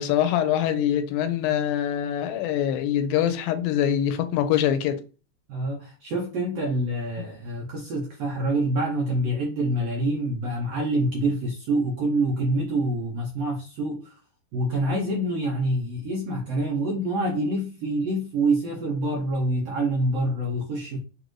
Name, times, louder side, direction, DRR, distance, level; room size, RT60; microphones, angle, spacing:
voice 1, 0.0-5.0, left 10 dB, 85° left, 2.3 m, -24 dB
voice 2, 5.5-14.1 14.5-21.0, right 1 dB, 80° right, 1.4 m, -26 dB
6.6 x 2.6 x 3.1 m
omnidirectional pair, 4.1 m